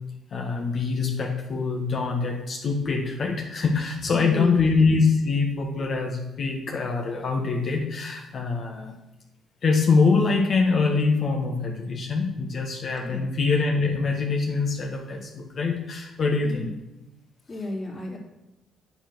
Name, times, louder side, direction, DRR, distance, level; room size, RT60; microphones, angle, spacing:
voice 1, 0.3-8.9 9.6-16.7, left 4 dB, 55° left, 1 dB, 1.7 m, -24 dB
voice 2, 4.1-4.6 13.0-13.3 16.4-16.7 17.5-18.2, left 1 dB, 35° left, -2 dB, 3.1 m, -32 dB
8.4 x 7.9 x 6.2 m, 0.92 s
cardioid pair, 90°, 0 cm